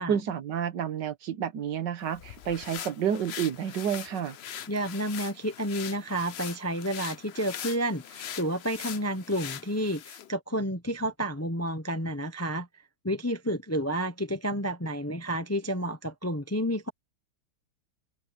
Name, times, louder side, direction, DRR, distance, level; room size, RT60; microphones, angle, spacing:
voice 1, 0.0-4.4, right 8 dB, 70° right, 1.7 m, -30 dB
sound 1, 2.1-10.3, left 9 dB, 80° left, 0.5 m, -41 dB
voice 2, 4.7-12.7 13.0-16.9, equal, 15° left, 0.6 m, -30 dB
open air
omnidirectional pair, 2.0 m